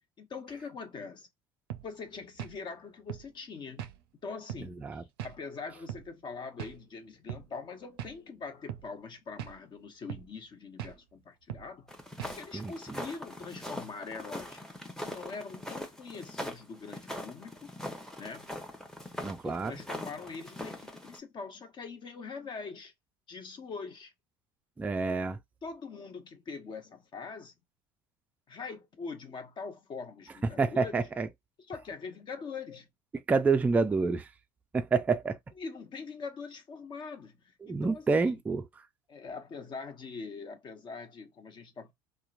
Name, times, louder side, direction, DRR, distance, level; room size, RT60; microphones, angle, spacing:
voice 1, 0.2-1.3 1.8-3.9 4.2-11.9 12.3-14.6 15.0-17.7 18.2-18.5 19.4-22.9 23.3-24.1 25.6-27.5 28.5-31.0 31.7-32.9 35.6-38.4 39.1-41.9, left 4 dB, 40° left, 0.8 m, -43 dB
sound 1, 1.7-1.9 2.4-2.6 3.1-3.3 3.8-4.0 4.5-4.7 5.2-5.4 5.9-6.1 6.6-6.8 7.3-7.5 8.0-8.2 8.7-8.9 9.4-9.6 10.1-10.3 10.8-11.0 11.5-11.7 12.2-12.4, right 10 dB, 80° right, 0.4 m, -40 dB
sound 2, 11.9-21.2, left 1 dB, 5° left, 0.8 m, -42 dB
voice 2, 19.2-19.7 24.8-25.4 30.6-31.3 33.3-34.3 34.7-35.4 37.6-38.6, right 4 dB, 10° right, 0.3 m, -28 dB
2.8 x 2.1 x 2.4 m
hypercardioid pair, 85°, 12 cm